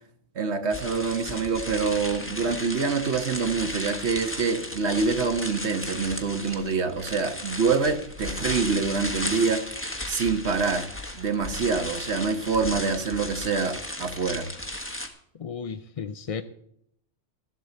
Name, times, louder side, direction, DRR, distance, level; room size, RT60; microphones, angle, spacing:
voice 1, 0.3-9.7 10.1-14.5, right 4 dB, 65° right, 8 dB, 1.4 m, -26 dB
sound 1, 0.7-15.1, left 1 dB, 10° left, 1.4 m, -35 dB
voice 2, 15.4-16.4, left 6 dB, 45° left, 10 dB, 0.5 m, -34 dB
13.0 x 8.0 x 7.8 m, 0.70 s
omnidirectional pair, 1.3 m